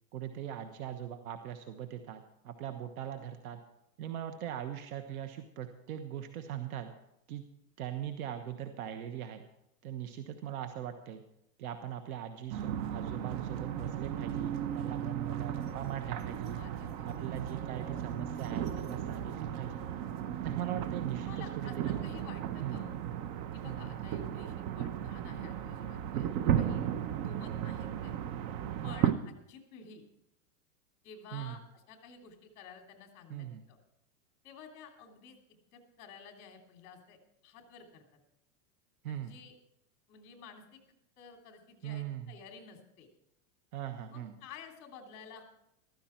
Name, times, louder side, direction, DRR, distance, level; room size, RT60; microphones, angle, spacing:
voice 1, 0.1-3.6 4.0-6.9 7.3-7.4 7.8-9.4 9.8-11.2 11.6-16.6 17.0-19.9 20.4-22.0 22.6-22.9 23.7-23.9 26.1-26.5 28.8-29.0 31.3-31.6 33.3-33.6 39.0-39.3 41.8-42.3 43.7-44.3, right 10 dB, 65° right, 7 dB, 1.3 m, -40 dB
sound 1, 12.5-29.1, right 10 dB, 35° right, 0.9 m, -35 dB
voice 2, 16.5-17.2 17.7-17.9 20.4-20.6 21.2-23.0 23.5-26.3 26.6-26.8 27.2-28.1 28.8-30.0 31.0-33.8 34.4-35.4 35.7-37.2 37.4-38.0 39.1-39.5 40.1-40.8 41.2-43.1 44.1-45.4, left 6 dB, 40° left, 3 dB, 3.1 m, -52 dB
15.0 x 13.5 x 4.5 m, 0.81 s
supercardioid pair, 145°, 47 cm